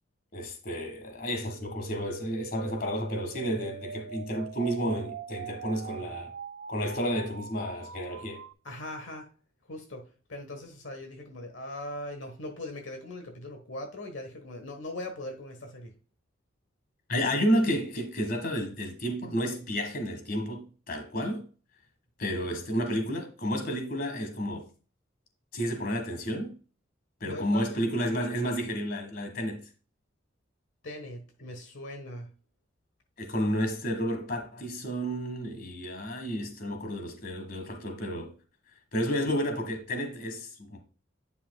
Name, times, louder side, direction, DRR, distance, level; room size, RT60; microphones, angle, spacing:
voice 1, 0.3-6.3 6.7-8.4 17.1-21.4 22.2-24.7 25.5-26.5 27.2-29.6 33.2-38.3 38.9-40.8, equal, 50° left, 1.5 m, -31 dB
sound 1, 1.6-8.5, right 6 dB, 65° right, 0.4 m, -43 dB
voice 2, 8.6-9.3 9.7-15.9 27.2-28.0 30.8-32.3, left 1 dB, 75° left, 1.2 m, -40 dB
9.7 x 5.6 x 2.2 m
head